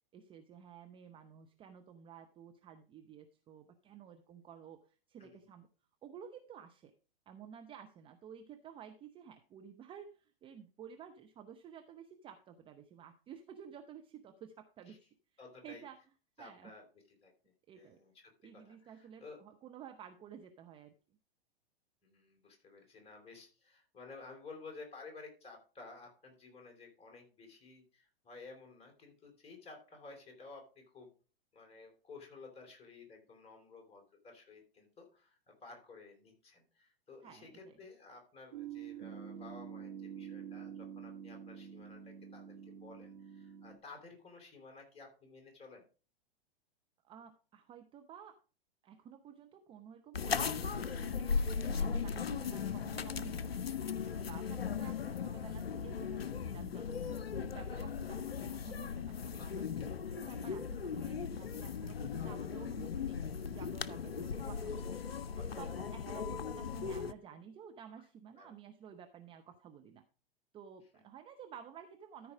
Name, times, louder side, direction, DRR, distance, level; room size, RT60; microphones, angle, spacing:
voice 1, 0.1-5.7 6.0-6.9 7.3-15.1 15.6-16.0 16.4-16.7 17.7-18.0 18.4-20.9 37.2-37.8 47.0-48.4 48.8-53.8 54.2-65.0 65.6-70.0 70.5-72.3, right 8 dB, 15° right, 6 dB, 0.6 m, -53 dB
voice 2, 15.4-15.8 16.4-16.9 17.2-19.4 22.0-31.1 31.5-45.8 64.9-65.1 65.4-65.7 68.3-68.5 70.9-71.0, left 3 dB, 20° left, 2 dB, 3.4 m, -54 dB
sound 1, 38.5-43.8, right 8 dB, 60° right, 1.6 m, -47 dB
sound 2, 50.1-67.1, left 6 dB, 80° left, 0.6 m, -38 dB
13.5 x 4.7 x 4.9 m, 0.36 s
figure-of-eight pair, 100°, 30 cm